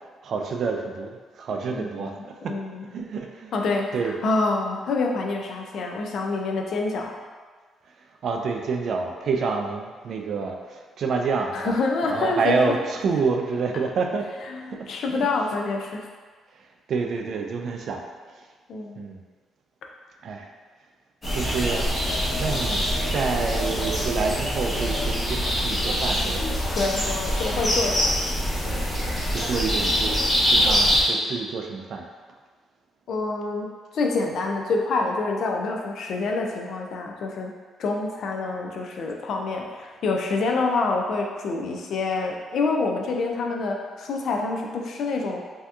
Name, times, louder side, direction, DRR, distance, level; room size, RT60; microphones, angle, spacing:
voice 1, 0.2-2.1 2.4-2.5 2.9-3.5 3.9-4.1 8.2-11.7 12.0-14.3 14.7-15.3 16.9-18.0 19.0-19.2 20.2-20.5 21.3-21.9 22.4-26.4 29.3-30.1 30.5-32.0, right 4 dB, 60° right, 3 dB, 0.4 m, -28 dB
voice 2, 1.7-2.1 2.5-2.9 3.5-7.1 11.5-12.8 14.5-16.0 18.7-19.1 26.7-28.1 33.1-37.5 37.8-45.4, left 3 dB, 65° left, 1 dB, 0.4 m, -27 dB
sound 1, 21.2-31.0, equal, 20° left, 1.1 m, -24 dB
3.4 x 2.7 x 2.3 m, 1.5 s
cardioid pair, 90°, 0 cm